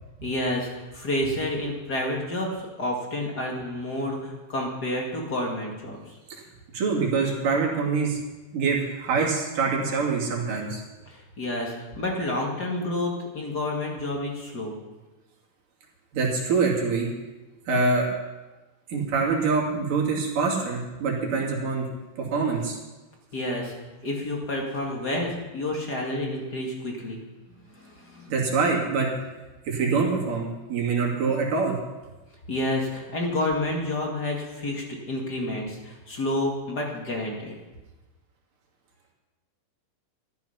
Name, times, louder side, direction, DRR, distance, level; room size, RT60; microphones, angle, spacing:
voice 1, 0.2-6.0 11.1-14.7 23.3-23.7 24.0-27.2 27.7-28.3 32.5-37.5, left 1 dB, 35° left, -1 dB, 2.2 m, -29 dB
voice 2, 6.7-8.2 8.5-10.8 16.1-17.1 17.7-18.1 18.9-21.9 22.3-22.8 28.3-29.1 29.7-31.8, right 4 dB, 65° right, -2 dB, 4.2 m, -25 dB
14.0 x 12.0 x 5.8 m, 1.2 s
omnidirectional pair, 4.1 m